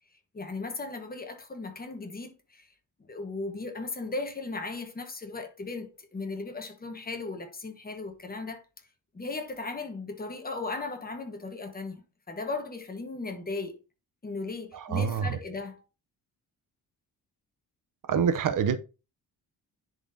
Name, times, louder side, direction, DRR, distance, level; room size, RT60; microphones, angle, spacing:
voice 1, 0.3-2.7 3.0-8.6 9.1-13.7 14.2-15.8, left 3 dB, 25° left, 1.3 m, -37 dB
voice 2, 14.7-15.2 18.1-18.8, right 7 dB, 60° right, 0.7 m, -26 dB
10.0 x 4.1 x 2.7 m
cardioid pair, 145°, 37 cm